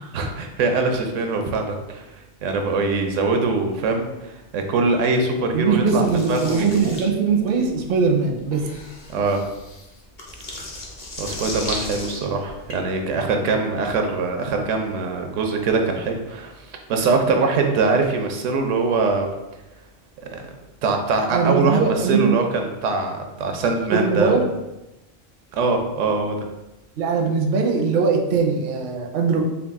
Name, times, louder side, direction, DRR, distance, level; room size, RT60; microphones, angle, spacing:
voice 1, 0.1-6.9 9.1-9.4 11.2-19.3 20.2-20.4 20.8-24.4 25.5-26.4, right 3 dB, 80° right, 4 dB, 0.9 m, -23 dB
voice 2, 5.5-8.6 21.3-22.4 23.9-24.4 27.0-29.4, right 5 dB, 55° right, 2 dB, 0.6 m, -21 dB
sound 1, 5.9-12.7, left 2 dB, 40° left, 0.7 m, -35 dB
4.0 x 2.4 x 3.5 m, 0.97 s
omnidirectional pair, 1.3 m